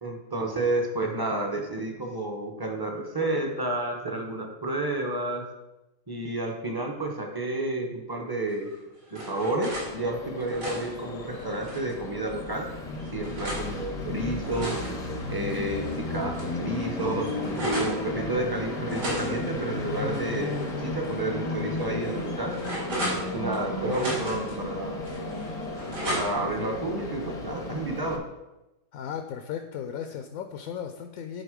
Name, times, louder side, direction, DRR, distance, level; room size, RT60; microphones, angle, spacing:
voice 1, 0.0-5.5 6.1-8.7 9.1-12.7 13.1-14.8 15.3-22.5 23.3-25.0 26.1-28.2, right 1 dB, 20° right, 2 dB, 0.7 m, -30 dB
sound 1, 8.6-9.9 10.3-12.0 12.5-13.7 14.2-16.0 16.3-16.4 16.7-18.0 18.9-20.7 21.0-21.2 21.8-23.6 23.9-24.6 25.0-26.5, right 1 dB, 75° right, 3.4 m, -35 dB
Train, 9.7-28.2, left 2 dB, 35° left, 0.6 m, -34 dB
voice 2, 28.9-31.4, left 8 dB, 70° left, 6 dB, 0.9 m, -36 dB
10.5 x 4.2 x 5.0 m, 0.98 s
omnidirectional pair, 1.8 m